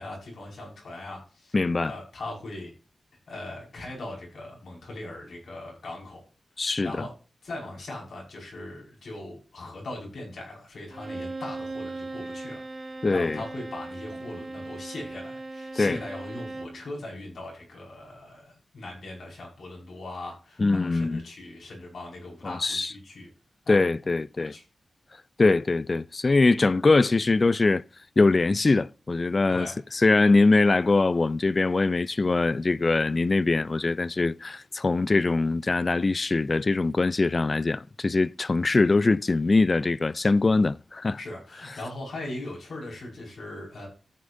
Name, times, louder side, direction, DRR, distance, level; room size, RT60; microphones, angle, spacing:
voice 1, 0.0-1.6 1.8-2.7 3.3-6.3 6.6-7.1 7.4-23.3 23.7-23.8 24.4-24.6 29.5-29.8 41.2-43.9, left 2 dB, 80° left, 5.5 m, -40 dB
voice 2, 1.5-1.9 6.6-6.9 13.0-13.4 15.8-16.0 20.6-21.2 22.4-22.9 23.7-24.5 25.4-27.8 28.2-29.7 30.0-41.2, left 3 dB, 40° left, 0.4 m, -22 dB
Bowed string instrument, 10.9-16.8, right 2 dB, 40° right, 0.8 m, -38 dB
14.0 x 7.3 x 2.6 m
wide cardioid pair, 85°, 0 cm